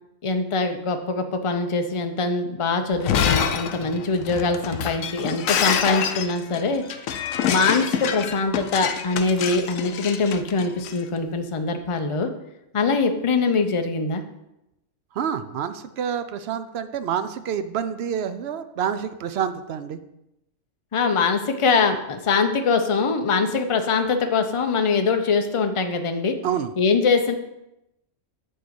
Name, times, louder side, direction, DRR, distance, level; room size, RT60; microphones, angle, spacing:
voice 1, 0.2-6.8 7.5-12.3 12.7-14.2 20.9-26.4 26.8-27.3, left 4 dB, 35° left, 6 dB, 0.6 m, -23 dB
Shatter, 2.9-11.0, left 8 dB, 85° left, 1.1 m, -26 dB
voice 2, 15.1-20.0 26.4-26.7, right 8 dB, 65° right, 11 dB, 0.7 m, -28 dB
8.8 x 3.9 x 6.9 m, 0.88 s
omnidirectional pair, 1.3 m